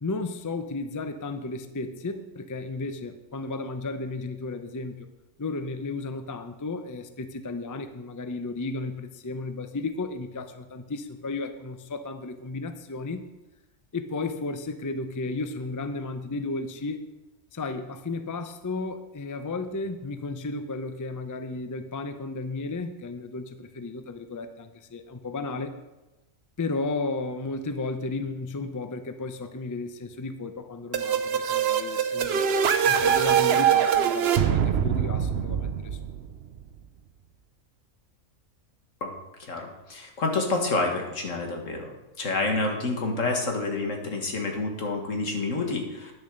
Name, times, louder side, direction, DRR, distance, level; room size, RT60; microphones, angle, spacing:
voice 1, 0.0-5.1 5.4-13.3 13.9-17.1 17.5-25.7 26.6-32.6 32.8-36.0, left 3 dB, 20° left, 8 dB, 0.5 m, -34 dB
sound 1, 30.9-36.6, right 8 dB, 60° right, 0.9 m, -23 dB
voice 2, 39.4-41.9 42.2-46.1, left 3 dB, 75° left, 2 dB, 2.1 m, -28 dB
10.5 x 7.1 x 6.6 m, 1.0 s
omnidirectional pair, 1.3 m